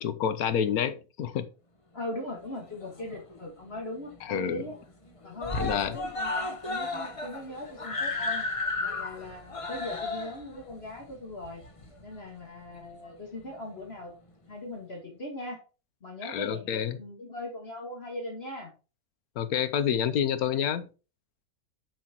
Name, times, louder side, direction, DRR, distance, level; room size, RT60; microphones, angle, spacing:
voice 1, 0.0-1.5 4.2-4.7 5.6-6.0 16.2-17.0 19.4-20.9, left 8 dB, 85° left, 1.3 m, -28 dB
voice 2, 1.9-4.8 5.2-8.5 8.8-11.6 12.0-14.1 14.5-15.6 16.0-18.7, left 1 dB, 45° left, 1.9 m, -39 dB
Screaming, 2.5-3.4 3.8-3.9 4.2-4.3 4.6-5.1 5.4-12.2 13.0-13.1, left 3 dB, 25° left, 0.9 m, -34 dB
6.3 x 6.2 x 4.3 m
omnidirectional pair, 1.5 m